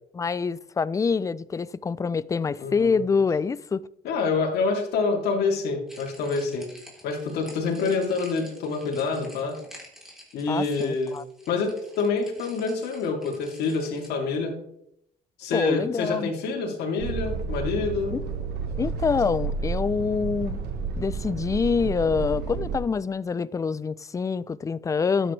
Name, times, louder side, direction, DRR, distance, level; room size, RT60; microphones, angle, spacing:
voice 1, 0.1-3.8 10.5-11.2 15.5-16.3 18.1-18.2 18.8-20.6 21.0-25.3, left 5 dB, 20° left, 0.4 m, -26 dB
voice 2, 2.6-3.0 4.0-6.7 7.0-9.5 10.3-11.2 11.5-14.6 15.4-18.1, left 4 dB, 75° left, 2.8 m, -27 dB
sound 1, 5.9-14.1, equal, ahead, 3.5 m, -49 dB
sound 2, 17.0-22.8, right 5 dB, 80° right, 1.4 m, -31 dB
12.0 x 9.1 x 3.2 m
cardioid pair, 110°, 17 cm